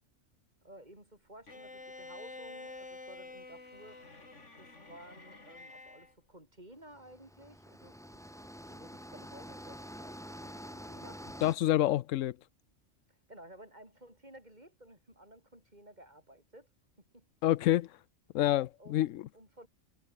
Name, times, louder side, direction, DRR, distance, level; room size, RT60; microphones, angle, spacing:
voice 1, 0.6-4.0 4.6-8.0 8.7-11.2 13.1-16.7 17.1-17.3 18.8-19.0 19.3-19.7, right 1 dB, 35° right, 7.0 m, -54 dB
Bowed string instrument, 1.5-6.1, left 2 dB, 70° left, 4.2 m, -49 dB
sound 1, 6.9-11.5, equal, ahead, 6.4 m, -47 dB
voice 2, 11.4-12.4 17.4-18.0 18.3-19.3, left 14 dB, 85° left, 1.0 m, -28 dB
omnidirectional pair, 1.3 m